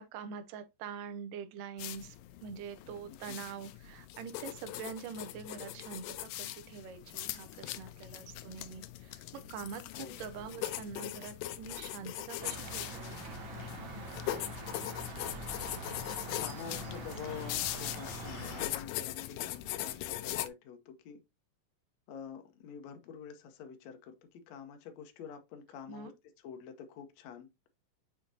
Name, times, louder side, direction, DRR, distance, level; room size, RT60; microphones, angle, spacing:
voice 1, 0.0-2.2 2.4-13.2 25.9-26.1, right 6 dB, 80° right, 2.2 m, -45 dB
sound 1, 1.8-20.5, left 14 dB, 90° left, 2.3 m, -41 dB
sound 2, 12.4-18.7, right 3 dB, 55° right, 1.4 m, -44 dB
voice 2, 16.4-21.2 22.1-26.1 26.4-27.5, left 7 dB, 70° left, 1.8 m, -47 dB
6.1 x 5.7 x 2.7 m
omnidirectional pair, 4.0 m